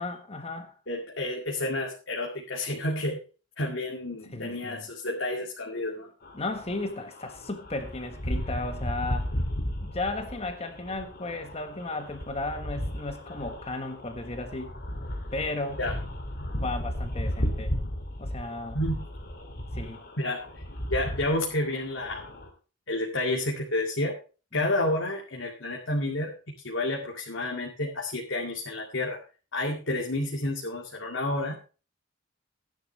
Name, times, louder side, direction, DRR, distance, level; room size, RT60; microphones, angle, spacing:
voice 1, 0.0-0.7 4.3-4.9 6.3-9.3 9.8-14.8 15.3-15.8 16.5-17.7 18.2-18.8 19.7-20.0 24.5-24.7, left 2 dB, 35° left, 6 dB, 1.4 m, -34 dB
voice 2, 0.9-3.2 3.6-6.1 15.8-16.0 18.7-19.0 20.2-20.5 20.9-22.2 22.9-24.1 24.5-26.3 26.6-29.2 29.5-31.6, left 1 dB, 90° left, -1 dB, 2.3 m, -30 dB
sound 1, 6.2-22.5, equal, 55° left, 2.7 m, -35 dB
15.5 x 10.5 x 3.2 m, 0.35 s
head